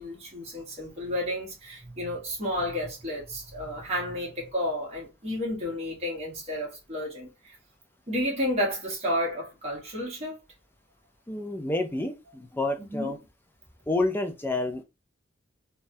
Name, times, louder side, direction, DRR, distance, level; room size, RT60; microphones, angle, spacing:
voice 1, 0.0-7.6 8.1-10.4 12.8-13.1, equal, 35° right, 1.3 m, -31 dB
voice 2, 11.3-13.2 13.9-14.8, left 2 dB, 10° left, 0.4 m, -29 dB
3.3 x 2.2 x 2.6 m
head